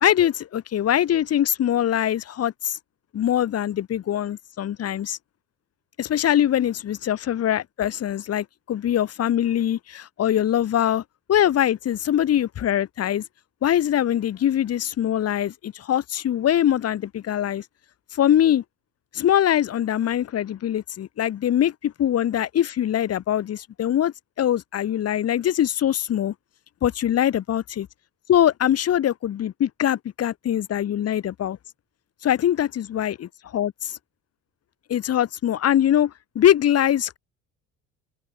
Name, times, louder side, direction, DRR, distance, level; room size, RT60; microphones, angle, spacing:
voice 1, 0.0-2.8 3.1-5.2 6.0-11.0 11.3-13.2 13.6-17.6 18.1-18.6 19.1-26.3 26.8-27.9 28.3-31.6 32.2-34.0 34.9-37.2, left 11 dB, 35° left, 0.9 m, -22 dB
hypercardioid pair, 65°, 41 cm